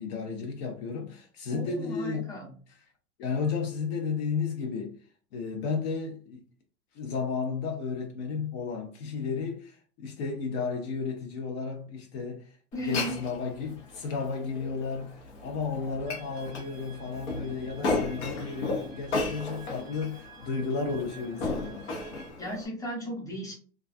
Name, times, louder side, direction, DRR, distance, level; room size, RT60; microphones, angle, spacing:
voice 1, 0.0-2.3 3.2-5.0 5.3-6.4 6.9-12.5 12.8-21.9, left 5 dB, 60° left, 0.7 m, -33 dB
voice 2, 1.5-2.5 12.7-13.2 22.4-23.5, equal, 10° left, 1.0 m, -35 dB
Glass, 12.7-22.7, left 3 dB, 85° left, 0.9 m, -35 dB
sound 1, 16.1-22.3, right 8 dB, 45° right, 0.5 m, -53 dB
2.3 x 2.3 x 2.5 m
hypercardioid pair, 115°, 34 cm